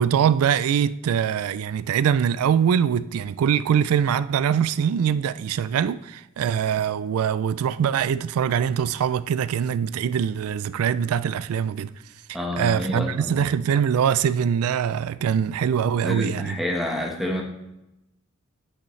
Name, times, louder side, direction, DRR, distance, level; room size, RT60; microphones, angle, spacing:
voice 1, 0.0-11.9 12.6-16.6, right 8 dB, 85° right, 0.3 m, -23 dB
voice 2, 12.3-13.5 16.0-17.4, left 1 dB, ahead, 1.1 m, -28 dB
8.9 x 7.9 x 3.2 m
head